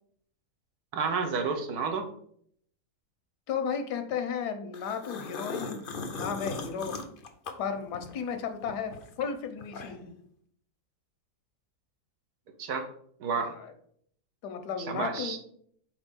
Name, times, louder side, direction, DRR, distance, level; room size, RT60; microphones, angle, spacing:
voice 1, 0.9-2.1 12.6-12.9 13.2-13.5 14.9-15.4, right 5 dB, 70° right, 5 dB, 1.4 m, -30 dB
voice 2, 3.5-7.0 7.6-10.1 13.4-13.7 14.4-15.4, left 6 dB, 80° left, 7 dB, 1.4 m, -34 dB
sound 1, 4.7-8.3 8.7-10.2, left 4 dB, 55° left, 0.6 m, -39 dB
4.5 x 4.2 x 5.2 m, 0.65 s
omnidirectional pair, 1.7 m